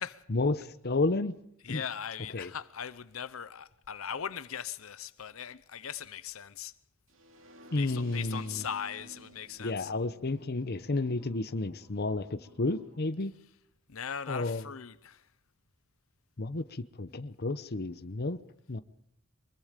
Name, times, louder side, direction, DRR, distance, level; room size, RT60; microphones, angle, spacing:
voice 1, 0.3-1.4 1.7-1.8 2.3-2.5 7.7-8.6 9.6-13.3 14.3-14.6 16.4-18.4 18.7-18.8, left 2 dB, 50° left, 0.9 m, -31 dB
voice 2, 1.6-6.7 7.8-9.9 13.9-15.2, left 8 dB, 85° left, 0.9 m, -39 dB
sound 1, 7.1-13.1, right 1 dB, 70° right, 2.7 m, -55 dB
24.0 x 22.5 x 5.2 m
head